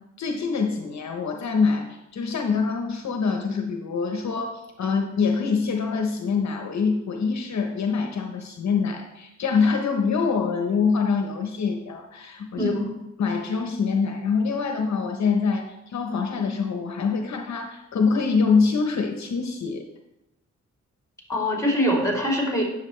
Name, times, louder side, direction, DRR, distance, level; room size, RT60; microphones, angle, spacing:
voice 1, 0.2-12.7 13.2-19.8, left 5 dB, 65° left, 4 dB, 0.9 m, -25 dB
voice 2, 12.6-12.9 21.3-22.6, equal, 10° left, -2 dB, 3.0 m, -23 dB
9.6 x 7.2 x 3.2 m, 0.92 s
cardioid pair, 90°, 30 cm